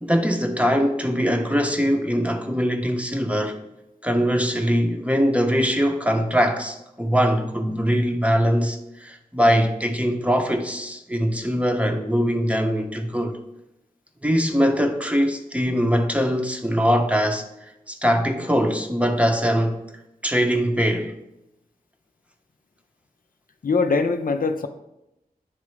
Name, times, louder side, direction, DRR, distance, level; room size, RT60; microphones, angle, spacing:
voice 1, 0.0-3.6 4.0-13.4 14.2-17.4 17.9-20.0 20.2-21.1, equal, 10° right, 0.6 m, -22 dB
voice 2, 23.6-24.7, left 4 dB, 70° left, 0.5 m, -22 dB
9.4 x 3.6 x 3.1 m
wide cardioid pair, 70°, 15 cm